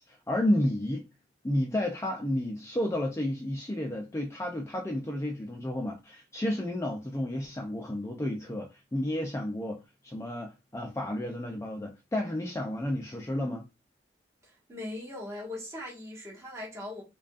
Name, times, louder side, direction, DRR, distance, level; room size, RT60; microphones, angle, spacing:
voice 1, 0.1-1.0 1.4-13.6, left 1 dB, 15° left, 0.4 m, -31 dB
voice 2, 14.4-17.0, left 1 dB, 15° right, 1.5 m, -40 dB
4.9 x 2.3 x 2.4 m
head